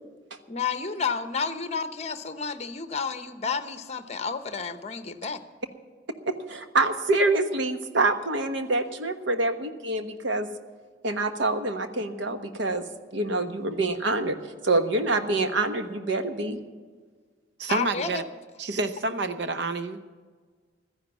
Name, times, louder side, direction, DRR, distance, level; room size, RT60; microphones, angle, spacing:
voice 1, 0.5-5.4 17.7-18.2, left 5 dB, 35° left, 10 dB, 0.8 m, -31 dB
voice 2, 6.2-10.5 11.0-12.8 13.1-14.4 14.6-16.6, right 2 dB, 90° right, 8 dB, 1.2 m, -26 dB
voice 3, 17.6-18.2 18.6-20.0, right 3 dB, 65° right, 11 dB, 0.7 m, -28 dB
14.0 x 10.5 x 7.1 m, 1.5 s
head